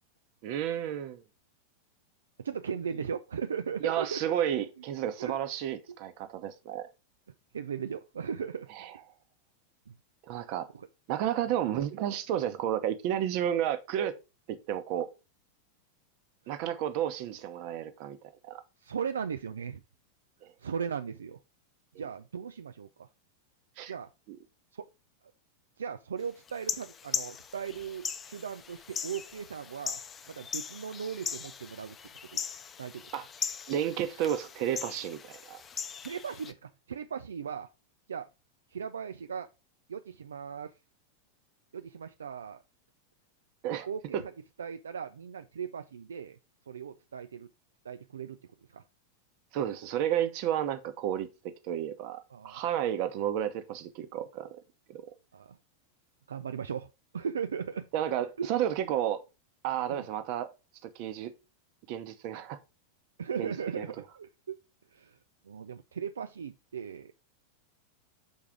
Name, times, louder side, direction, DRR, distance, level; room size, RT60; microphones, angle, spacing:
voice 1, 0.4-1.2 3.8-6.9 8.8-8.9 10.3-10.7 11.1-14.1 14.5-15.1 16.5-18.2 18.4-18.6 20.4-20.5 21.9-22.0 23.8-23.9 24.3-24.4 33.1-33.3 33.7-35.6 43.6-43.9 49.5-51.3 51.6-54.6 54.9-55.0 57.9-59.2 59.6-60.5 60.8-61.3 61.9-62.6 63.4-63.9, right 10 dB, 45° right, 1.1 m, -32 dB
voice 2, 2.4-4.3 5.2-5.3 7.5-8.7 9.9-10.0 10.7-10.9 18.8-19.8 20.6-21.4 22.0-23.1 23.9-24.1 24.7-24.9 25.8-30.0 30.3-32.0 32.3-32.4 32.8-33.1 36.0-37.7 38.1-38.3 38.7-39.5 39.9-40.7 41.7-42.6 43.7-44.3 44.6-46.4 46.7-47.5 47.8-48.4 48.7-48.8 52.3-52.6 55.3-55.6 56.3-57.9 58.4-58.6 59.9-60.1 63.2-64.6 64.9-65.2 65.5-67.1, right 7 dB, 70° right, 0.4 m, -37 dB
sound 1, 26.5-36.5, left 7 dB, 20° left, 0.7 m, -39 dB
7.3 x 4.7 x 3.6 m
figure-of-eight pair, 90°, 0 cm